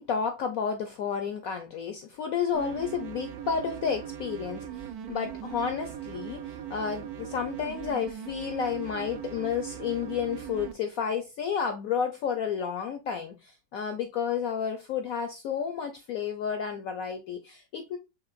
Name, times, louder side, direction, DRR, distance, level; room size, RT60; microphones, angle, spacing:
voice 1, 0.0-18.0, left 7 dB, 75° left, 0.8 m, -31 dB
sound 1, 2.5-10.7, right 10 dB, 70° right, 1.0 m, -39 dB
5.7 x 3.1 x 2.4 m
omnidirectional pair, 2.0 m